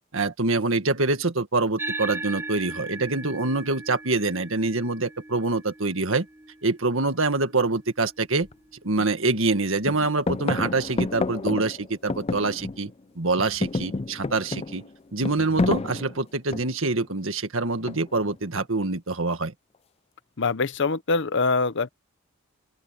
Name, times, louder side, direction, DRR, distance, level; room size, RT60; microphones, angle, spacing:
voice 1, 0.1-6.3 6.6-8.5 8.8-12.9 13.2-19.5, right 3 dB, 70° right, 1.8 m, -25 dB
sound 1, 1.8-10.5, right 3 dB, 10° right, 3.6 m, -39 dB
sound 2, 8.4-8.5 9.0-9.6 9.8-13.0 13.3-16.9 17.9-18.3, left 3 dB, 30° left, 0.5 m, -30 dB
voice 2, 20.4-21.9, left 4 dB, 60° left, 0.8 m, -24 dB
open air
head